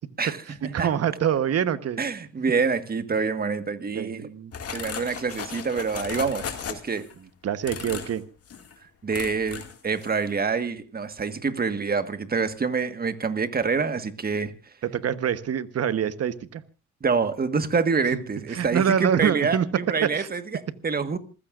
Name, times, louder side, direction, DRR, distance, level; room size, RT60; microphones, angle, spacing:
voice 1, 0.2-0.9 2.0-4.3 4.7-7.1 9.0-14.5 17.0-21.2, right 5 dB, 30° right, 1.6 m, -26 dB
voice 2, 0.7-2.0 3.9-4.5 7.4-8.2 14.8-16.6 18.5-19.7 20.0-20.3, right 8 dB, 55° right, 1.2 m, -25 dB
sound 1, 4.5-7.1 7.6-8.2 8.5-8.7 9.1-9.8 10.0-10.3, left 7 dB, 50° left, 2.3 m, -36 dB
27.5 x 15.5 x 2.6 m
cardioid pair, 90°, 30 cm